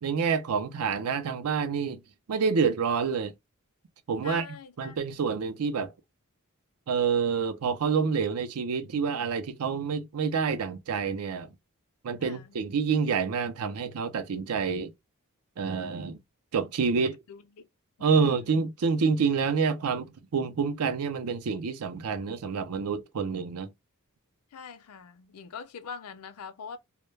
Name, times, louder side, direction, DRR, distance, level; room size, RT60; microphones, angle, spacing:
voice 1, 0.0-2.0 2.3-3.3 4.1-4.4 4.8-5.9 6.9-11.5 12.0-14.9 15.6-16.2 16.5-17.2 18.0-23.7, right 5 dB, 80° right, 0.5 m, -28 dB
voice 2, 4.2-5.3 12.2-12.5 17.3-17.4 18.0-18.6 24.5-26.8, left 6 dB, 85° left, 0.5 m, -43 dB
2.1 x 2.1 x 3.1 m
head